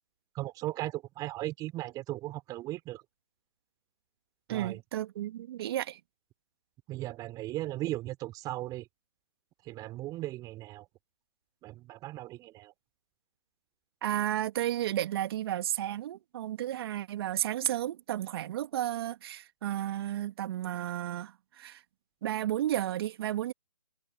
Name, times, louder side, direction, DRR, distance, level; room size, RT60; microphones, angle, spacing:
voice 1, 0.3-3.0 4.5-4.8 6.9-8.8 9.7-10.8 11.6-12.7, right 16 dB, 20° right, 4.1 m, -37 dB
voice 2, 4.5-6.0 14.0-21.8 22.2-23.5, right 12 dB, 40° right, 2.2 m, -32 dB
figure-of-eight pair, 145°, 20 cm